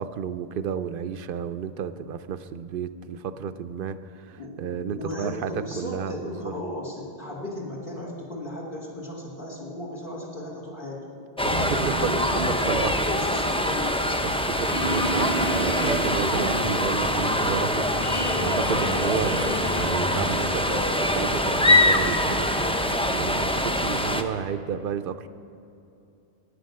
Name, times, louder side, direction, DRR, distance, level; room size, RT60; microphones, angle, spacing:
voice 1, 0.0-6.5 11.4-12.9 14.2-19.4 19.8-22.8 23.1-25.3, right 8 dB, 60° right, 12 dB, 0.7 m, -32 dB
voice 2, 4.9-11.0 12.0-14.0, left 1 dB, 55° left, -4 dB, 1.8 m, -35 dB
sound 1, 11.4-24.2, left 1 dB, 10° left, 0.3 m, -24 dB
sound 2, 11.5-22.9, equal, 35° left, 2.2 m, -33 dB
11.5 x 9.2 x 6.5 m, 2.8 s
omnidirectional pair, 1.1 m